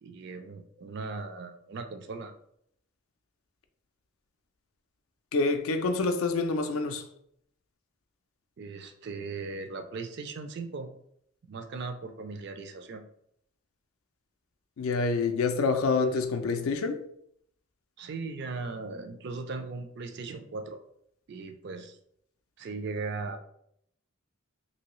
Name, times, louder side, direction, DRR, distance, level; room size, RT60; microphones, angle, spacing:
voice 1, 0.0-2.3 8.6-10.9 11.4-13.0 18.0-20.8 21.3-22.0 22.6-23.4, right 4 dB, 50° right, 0.4 m, -38 dB
voice 2, 5.3-7.0 14.8-17.0, left 4 dB, 80° left, 0.4 m, -27 dB
2.9 x 2.7 x 3.0 m
head